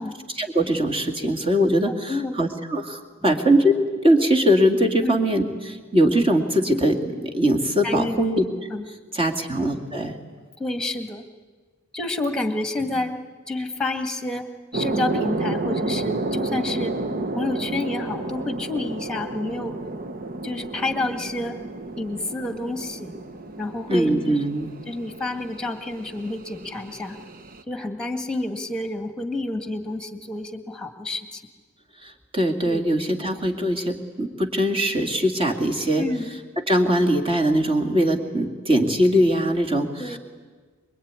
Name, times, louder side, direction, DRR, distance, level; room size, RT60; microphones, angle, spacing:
voice 1, 0.4-8.5 9.1-10.2 23.9-24.7 32.0-36.0 36.7-40.2, equal, 25° right, 3 dB, 2.3 m, -21 dB
voice 2, 7.8-8.3 8.7-8.9 10.6-11.2 11.9-13.2 13.5-14.4 14.7-16.9 17.3-19.8 20.4-21.6 22.0-23.2 23.6-24.5 24.9-27.2 27.7-31.4 32.6-32.8 36.0-36.4 40.0-40.2, left 2 dB, 5° left, 6 dB, 1.9 m, -29 dB
sound 1, 14.7-27.6, right 2 dB, 45° right, 1.0 m, -31 dB
25.0 x 22.5 x 9.7 m, 1.5 s
head